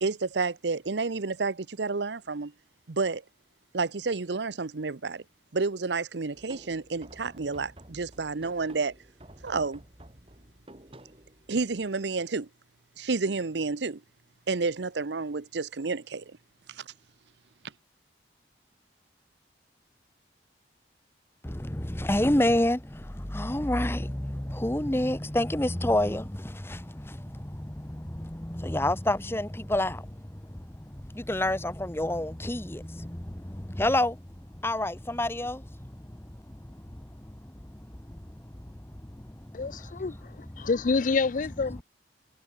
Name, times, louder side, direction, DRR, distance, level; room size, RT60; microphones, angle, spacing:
voice 1, 0.0-2.5 2.9-3.2 3.7-5.2 5.5-8.9 9.4-9.8 11.5-12.5 13.0-14.0 14.5-16.2 16.7-16.8, right 4 dB, 75° right, 0.8 m, -30 dB
sound 1, 6.3-11.9, right 1 dB, 30° right, 3.2 m, -51 dB
voice 2, 21.4-39.6 40.6-40.7, left 1 dB, 15° left, 1.0 m, -30 dB
voice 3, 39.5-41.8, left 4 dB, 45° left, 0.4 m, -28 dB
head